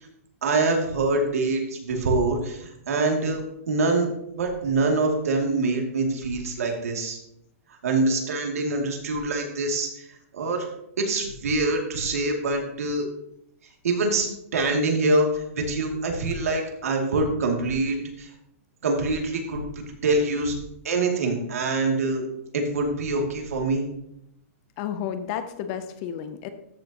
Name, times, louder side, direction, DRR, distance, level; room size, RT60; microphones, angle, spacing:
voice 1, 0.4-3.4 3.7-4.1 4.3-7.2 7.8-10.1 10.3-10.7 11.0-13.0 13.8-18.3 18.8-19.6 20.0-20.6 20.8-22.2 22.5-23.9, right 2 dB, 80° right, 1 dB, 2.4 m, -25 dB
voice 2, 24.8-26.5, left 9 dB, 25° left, 10 dB, 0.5 m, -32 dB
13.5 x 6.6 x 2.9 m, 0.78 s
hypercardioid pair, 170°, 8 cm